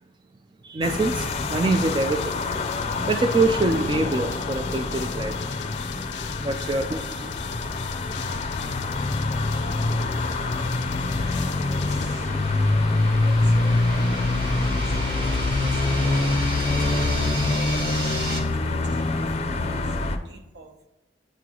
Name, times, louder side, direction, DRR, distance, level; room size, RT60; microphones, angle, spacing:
voice 1, 0.6-2.3 3.1-5.4 6.4-7.3, right 2 dB, 25° right, 6 dB, 0.3 m, -24 dB
sound 1, 0.8-20.2, left 2 dB, 35° left, 0.5 m, -25 dB
sound 2, 1.0-12.9, left 11 dB, 90° left, 0.4 m, -40 dB
sound 3, 7.9-18.4, right 1 dB, 85° right, 1.7 m, -36 dB
voice 2, 9.4-10.3 11.3-12.3 13.0-16.1 16.7-19.2 19.4-20.9, right 1 dB, 70° right, 3 dB, 1.0 m, -47 dB
9.1 x 3.1 x 3.8 m, 1.0 s
head